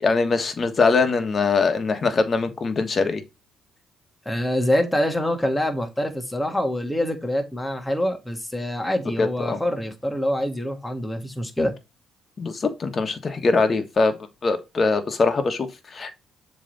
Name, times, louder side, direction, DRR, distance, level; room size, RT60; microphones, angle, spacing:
voice 1, 0.0-3.2 9.2-9.6 12.4-14.1 14.4-16.1, left 4 dB, 40° left, 1.4 m, -22 dB
voice 2, 4.2-11.7, left 1 dB, 5° left, 1.6 m, -25 dB
7.2 x 3.4 x 4.1 m
supercardioid pair, 75°, 0 cm